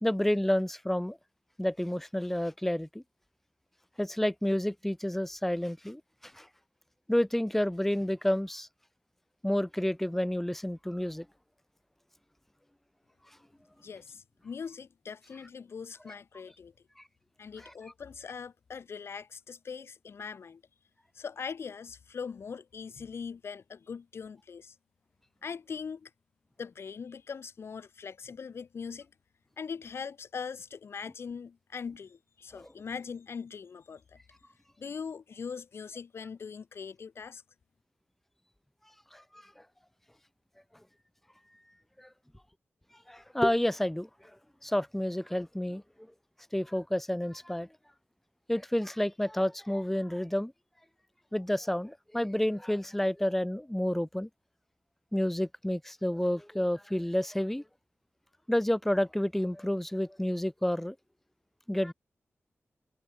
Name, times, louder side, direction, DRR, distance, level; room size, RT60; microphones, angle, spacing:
voice 1, 0.0-1.2 1.6-3.0 4.0-6.5 7.1-8.7 9.4-11.2 17.6-17.7 32.5-32.7 39.1-39.4 42.0-42.1 43.1-44.1 44.6-45.8 46.5-47.7 48.5-50.5 51.3-54.3 55.1-57.6 58.5-60.9 61.7-61.9, left 1 dB, 5° left, 1.5 m, -30 dB
voice 2, 13.8-16.7 17.4-20.6 21.1-24.7 25.4-26.1 26.6-29.1 29.6-34.2 34.8-37.4, left 6 dB, 65° left, 1.3 m, -41 dB
wide cardioid pair, 160°, 5 cm